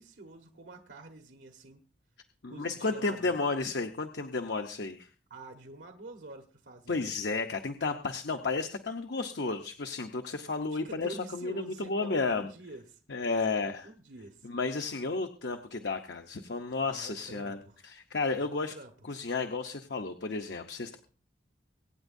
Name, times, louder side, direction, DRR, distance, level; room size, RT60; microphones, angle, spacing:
voice 1, 0.0-1.8 2.5-3.3 5.3-7.2 10.8-13.0 13.6-14.5 16.9-17.8 18.4-18.9, right 2 dB, 80° right, 4 dB, 1.3 m, -47 dB
voice 2, 2.4-5.1 6.9-12.5 13.1-13.9 14.4-18.7 19.1-21.0, left 3 dB, 70° left, 6 dB, 0.8 m, -32 dB
24.0 x 9.0 x 2.6 m, 0.39 s
head